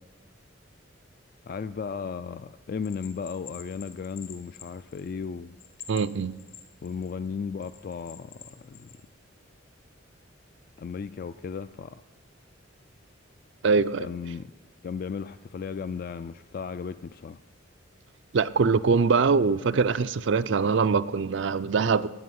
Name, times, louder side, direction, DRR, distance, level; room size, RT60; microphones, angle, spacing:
voice 1, 1.5-5.5 6.8-8.4 8.6-8.9 10.8-12.0 14.0-14.5 14.8-17.4, left 5 dB, 45° left, 0.3 m, -35 dB
Bell, 2.8-5.2 5.6-7.1 7.6-9.0, left 8 dB, 65° left, 1.3 m, -47 dB
voice 2, 5.9-6.3 13.6-14.1 18.3-22.1, right 5 dB, 60° right, 0.4 m, -23 dB
16.0 x 5.4 x 9.4 m
head